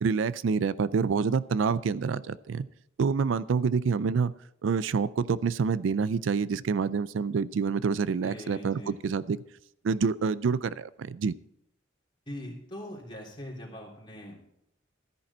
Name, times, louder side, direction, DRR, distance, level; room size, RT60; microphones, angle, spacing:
voice 1, 0.0-2.7 3.0-4.3 4.6-9.4 9.8-11.3, right 5 dB, 70° right, 17 dB, 0.4 m, -27 dB
voice 2, 8.2-9.0 12.3-14.4, equal, 25° left, -2 dB, 3.4 m, -41 dB
13.5 x 10.0 x 4.3 m, 0.77 s
head